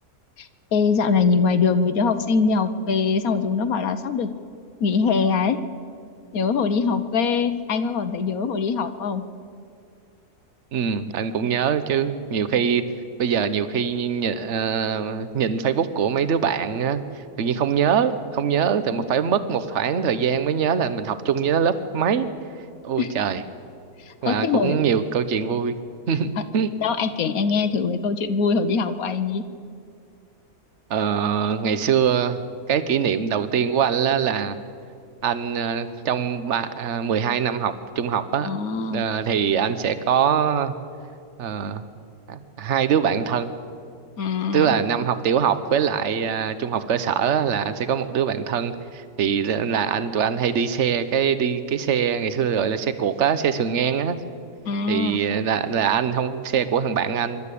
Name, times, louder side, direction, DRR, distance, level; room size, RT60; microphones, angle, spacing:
voice 1, 0.4-4.3 4.8-5.6 6.3-9.2 23.0-23.1 24.0-24.8 26.4-26.5 26.8-29.4 38.4-39.0 44.2-44.8 54.6-55.2, left 5 dB, 65° left, 10 dB, 1.2 m, -23 dB
voice 2, 10.7-12.8 13.2-22.3 22.8-23.4 24.2-25.8 26.1-26.7 30.9-32.4 32.7-34.6 35.2-38.5 38.9-40.7 41.4-41.9 42.3-43.5 44.5-54.2 54.9-57.5, right 7 dB, 50° right, 12 dB, 1.1 m, -23 dB
25.5 x 12.0 x 8.4 m, 2.4 s
omnidirectional pair, 1.7 m